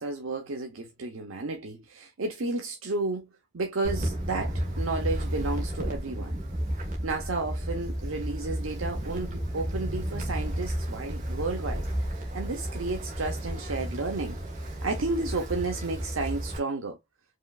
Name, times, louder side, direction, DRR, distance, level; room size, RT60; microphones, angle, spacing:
voice 1, 0.0-3.3 3.5-6.4 7.0-17.0, right 3 dB, 90° right, 0.8 m, -32 dB
Wind, 3.8-16.6, equal, 40° right, 1.4 m, -32 dB
4.9 x 3.1 x 2.3 m
head